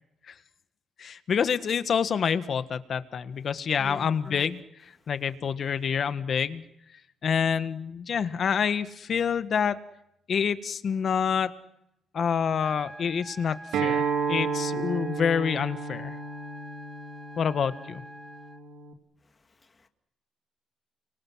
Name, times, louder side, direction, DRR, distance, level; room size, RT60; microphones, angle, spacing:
voice 1, 1.0-4.6 5.1-6.6 7.2-9.8 10.3-11.5 12.1-16.2 17.4-18.0, left 7 dB, 55° left, 11 dB, 1.6 m, -27 dB
voice 2, 3.8-4.5 5.0-5.1 19.2-19.9, left 3 dB, 30° left, 6 dB, 2.1 m, -46 dB
sound 1, 12.6-18.6, equal, 10° right, 2.3 m, -46 dB
Acoustic guitar, 13.7-18.9, right 5 dB, 80° right, 2.5 m, -32 dB
29.5 x 24.5 x 6.3 m, 0.80 s
cardioid pair, 90°, 0 cm